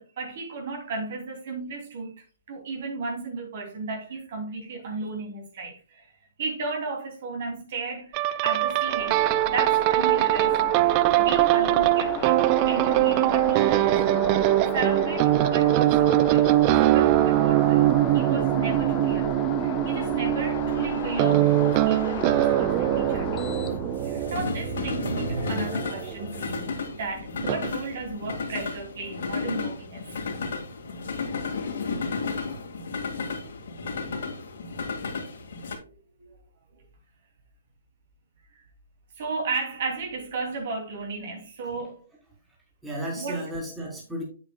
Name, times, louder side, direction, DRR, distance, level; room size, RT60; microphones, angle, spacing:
voice 1, 0.0-6.1 6.4-14.2 14.7-23.6 24.0-30.0 35.8-35.9 36.3-36.4 38.5-38.6 39.2-42.0 43.2-43.4, right 3 dB, 50° right, 3.2 m, -34 dB
sound 1, 8.1-26.6 27.4-27.7, right 16 dB, 30° right, 0.3 m, -22 dB
sound 2, 8.9-24.4, left 6 dB, 25° left, 1.0 m, -34 dB
sound 3, 16.2-35.8, left 3 dB, 60° left, 2.3 m, -34 dB
voice 2, 42.8-44.2, equal, 5° right, 3.3 m, -34 dB
8.2 x 8.2 x 2.4 m
figure-of-eight pair, 130°, 0 cm